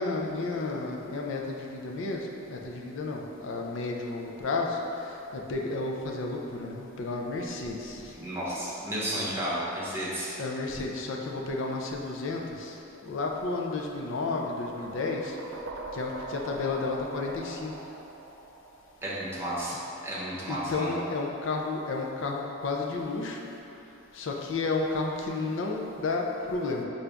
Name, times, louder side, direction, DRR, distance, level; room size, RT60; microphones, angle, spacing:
voice 1, 0.0-8.1 10.4-12.8 13.0-15.4 15.9-17.7 20.5-23.4 24.1-26.8, left 3 dB, 65° left, 0 dB, 0.5 m, -32 dB
voice 2, 8.2-10.3 19.0-19.7 20.0-20.9, right 1 dB, 10° right, -9 dB, 0.9 m, -32 dB
sound 1, 14.6-19.6, right 3 dB, 65° right, 0.4 m, -42 dB
5.7 x 2.6 x 3.4 m, 2.9 s
head